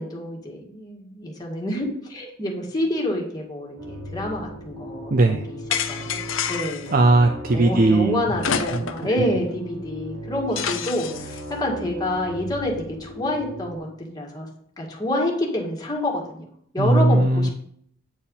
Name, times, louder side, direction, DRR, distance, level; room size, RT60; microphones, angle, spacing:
voice 1, 0.0-5.6 5.9-6.9 7.5-14.5 14.8-16.4 16.7-17.5, left 1 dB, 20° left, -2 dB, 1.8 m, -28 dB
sound 1, 3.8-13.8, equal, 90° right, 1.7 m, -37 dB
voice 2, 5.1-5.5 6.9-8.3 8.7-9.2 16.8-17.5, right 2 dB, 45° right, 5 dB, 0.5 m, -19 dB
sound 2, 5.7-6.9 8.4-9.1 9.5-9.6 10.6-11.4, left 7 dB, 70° left, 0.7 m, -28 dB
8.9 x 4.4 x 5.5 m, 0.66 s
head